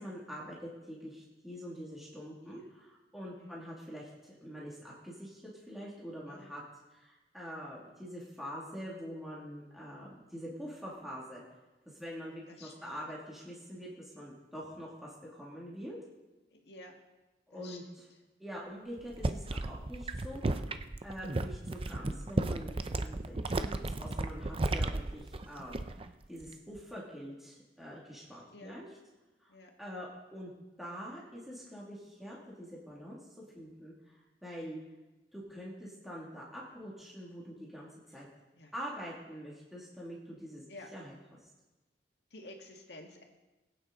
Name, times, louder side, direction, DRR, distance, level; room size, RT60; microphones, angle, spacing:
voice 1, 0.0-6.6 6.9-11.4 11.9-16.0 17.5-18.0 18.4-20.7 21.0-28.9 29.4-30.5 30.8-34.8 35.3-38.3 38.7-40.6 40.9-41.5, equal, ahead, -6 dB, 2.5 m, -45 dB
voice 2, 3.4-3.7 6.3-6.5 12.5-13.0 16.5-16.9 17.5-18.0 28.5-28.7 29.5-29.7 38.1-38.2 38.5-38.7 40.7-40.9 42.3-43.2, left 2 dB, 65° left, 2 dB, 2.0 m, -51 dB
sound 1, 19.0-26.1 26.4-26.8, right 2 dB, 30° right, 0.6 m, -34 dB
22.0 x 8.9 x 4.0 m, 1.1 s
head